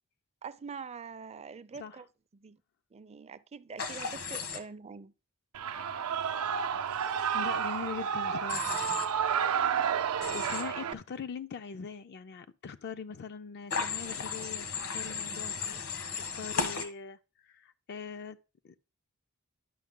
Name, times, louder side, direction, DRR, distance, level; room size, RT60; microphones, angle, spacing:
voice 1, 0.4-2.1 2.3-2.6 2.9-5.1, right 5 dB, 30° right, 0.4 m, -44 dB
voice 2, 1.7-2.0 4.5-4.6 7.3-8.8 9.7-9.8 10.3-18.4 18.6-18.8, left 6 dB, 50° left, 0.4 m, -42 dB
Human voice / Train, 3.8-4.6 8.5-9.1 10.2-10.6 13.7-16.8, left 5 dB, 70° left, 1.3 m, -35 dB
Shout / Cheering, 5.5-10.9, right 7 dB, 90° right, 0.5 m, -31 dB
11.0 x 5.8 x 3.7 m
head